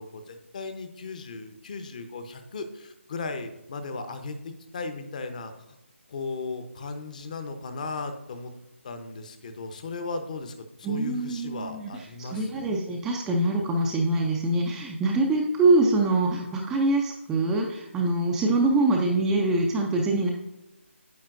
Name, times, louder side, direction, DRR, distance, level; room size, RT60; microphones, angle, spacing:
voice 1, 0.0-5.5 6.1-8.5 8.8-12.8, left 3 dB, 35° left, 8 dB, 0.8 m, -36 dB
voice 2, 10.8-20.3, right 2 dB, 5° right, 0 dB, 0.5 m, -24 dB
9.5 x 7.2 x 2.5 m, 0.94 s
figure-of-eight pair, 155°, 7 cm